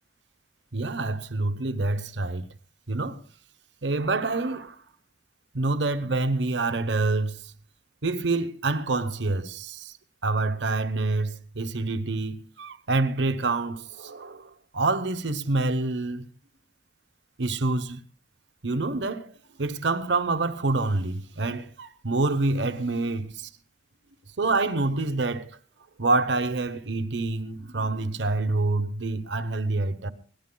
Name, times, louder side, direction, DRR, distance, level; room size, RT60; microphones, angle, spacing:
voice 1, 0.7-2.5 2.9-3.2 3.8-4.8 5.5-7.5 8.0-9.9 10.2-16.3 17.4-18.0 18.6-19.3 19.6-23.5 24.4-25.6 26.0-30.1, right 3 dB, 75° right, 0.9 m, -27 dB
22.5 x 17.5 x 2.2 m
head